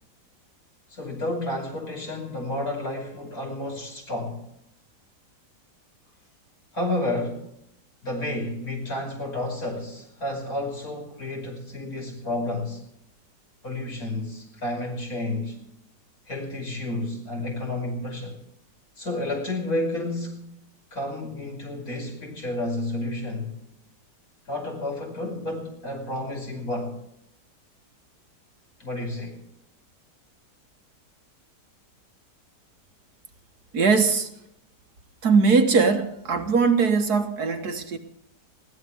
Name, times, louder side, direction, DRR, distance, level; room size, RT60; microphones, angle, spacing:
voice 1, 0.9-4.4 6.7-7.4 8.0-12.8 13.6-15.6 16.3-18.4 19.0-20.4 20.9-23.6 24.5-27.0 28.8-29.4, left 1 dB, 55° left, 5.8 m, -31 dB
voice 2, 33.7-34.3 35.2-38.0, right 4 dB, 65° right, 1.9 m, -20 dB
21.0 x 17.0 x 3.6 m
omnidirectional pair, 1.8 m